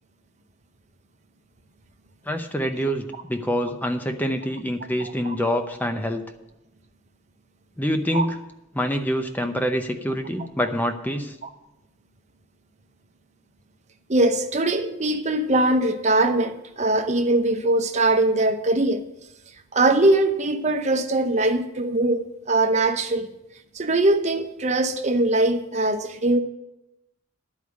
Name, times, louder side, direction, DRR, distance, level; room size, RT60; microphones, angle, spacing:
voice 1, 2.3-6.2 7.8-8.4 8.7-11.3, equal, 10° left, 6 dB, 0.7 m, -26 dB
voice 2, 5.0-5.3 8.1-8.3 14.1-19.0 19.7-23.3 23.7-26.4, right 2 dB, 35° right, 6 dB, 0.8 m, -21 dB
11.0 x 4.9 x 8.2 m, 0.92 s
head